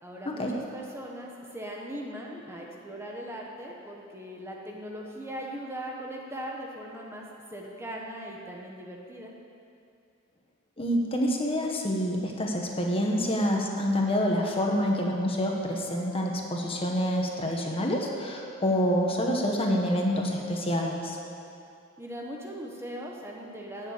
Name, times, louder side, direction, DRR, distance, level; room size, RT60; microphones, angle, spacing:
voice 1, 0.0-7.2 7.5-9.3 22.0-23.9, equal, 15° right, -2 dB, 1.5 m, -39 dB
voice 2, 10.8-21.2, equal, 30° left, 0 dB, 1.6 m, -27 dB
15.5 x 7.4 x 8.7 m, 2.5 s
head